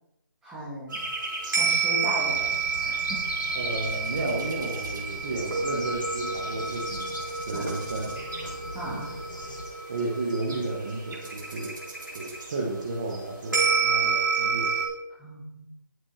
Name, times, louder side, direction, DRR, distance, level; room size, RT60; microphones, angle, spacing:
voice 1, 0.4-1.0 1.5-2.5 2.8-3.2 7.5-7.7 8.7-9.1 15.2-15.7, equal, 5° right, -9 dB, 2.6 m, -36 dB
sound 1, 0.9-14.9, right 5 dB, 65° right, 4.7 m, -30 dB
sound 2, 2.0-9.6, left 2 dB, 65° left, 5.2 m, -40 dB
voice 2, 3.5-7.1 7.4-8.1 8.9-9.1 9.9-11.7 12.1-14.7, right 2 dB, 25° right, -3 dB, 1.5 m, -32 dB
13.0 x 8.5 x 4.5 m, 0.87 s
hypercardioid pair, 175°, 11 cm